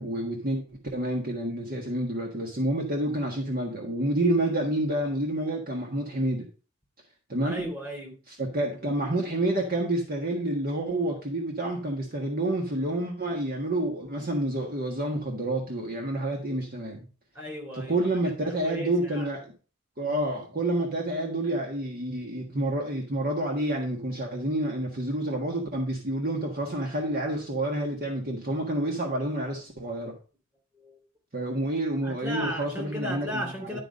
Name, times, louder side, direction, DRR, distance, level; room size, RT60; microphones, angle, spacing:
voice 1, 0.0-6.4 7.3-7.7 8.3-17.0 17.9-19.5 20.0-30.2 31.3-33.8, right 1 dB, 45° right, 0 dB, 1.5 m, -29 dB
voice 2, 7.4-8.2 17.3-18.0 18.4-19.3 30.7-31.0 32.0-33.8, equal, 10° right, -1 dB, 3.2 m, -35 dB
11.5 x 4.0 x 5.1 m, 0.35 s
head